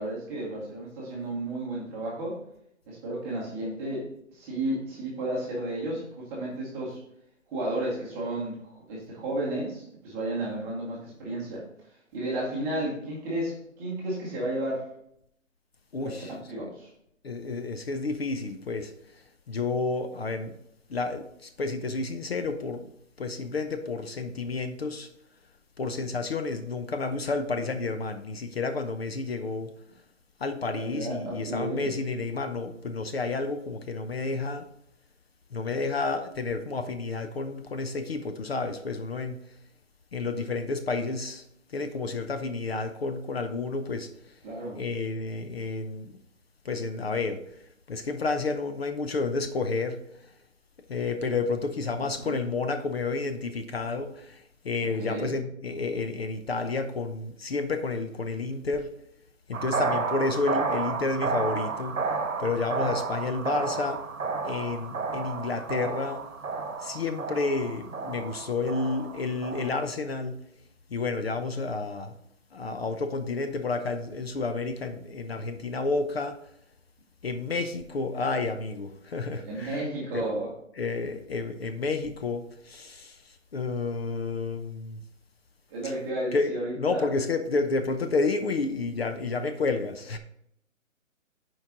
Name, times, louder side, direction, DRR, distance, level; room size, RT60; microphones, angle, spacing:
voice 1, 0.0-2.4 2.9-7.0 7.5-11.6 12.1-14.9 16.0-16.9 30.8-31.9 44.4-44.8 52.2-52.3 55.0-55.3 79.4-80.5 85.7-87.1, right 1 dB, 5° right, 0.9 m, -33 dB
voice 2, 15.9-16.7 17.2-18.9 19.5-20.5 20.9-22.9 23.2-25.1 25.8-29.7 30.4-34.7 35.5-39.4 40.1-44.1 44.7-46.1 46.6-47.4 47.9-50.0 50.9-58.9 59.5-62.0 62.4-64.0 64.4-66.2 66.8-70.4 70.9-72.1 72.5-76.4 77.2-80.4 80.7-85.0 85.8-85.9 86.3-90.2, left 3 dB, 50° left, 0.7 m, -30 dB
sound 1, 59.5-69.7, right 4 dB, 90° right, 1.3 m, -31 dB
10.5 x 4.7 x 3.8 m
hypercardioid pair, 160°, 40 cm